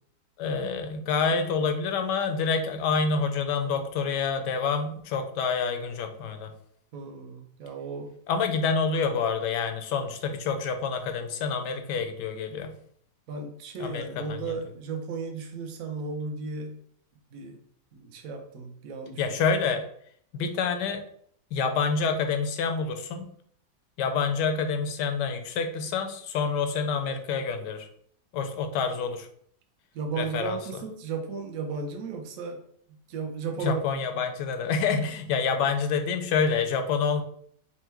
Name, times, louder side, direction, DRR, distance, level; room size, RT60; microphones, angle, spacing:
voice 1, 0.4-6.5 8.3-12.7 13.8-14.4 19.2-19.8 20.3-21.0 21.5-23.3 24.0-27.9 28.3-29.3 30.1-30.6 33.6-37.2, left 5 dB, 85° left, 7 dB, 1.2 m, -27 dB
voice 2, 6.9-8.2 13.3-16.8 17.3-17.6 17.9-19.2 29.9-32.6 33.1-34.0, right 4 dB, 65° right, 3 dB, 0.9 m, -35 dB
4.5 x 2.1 x 4.3 m, 0.62 s
omnidirectional pair, 1.8 m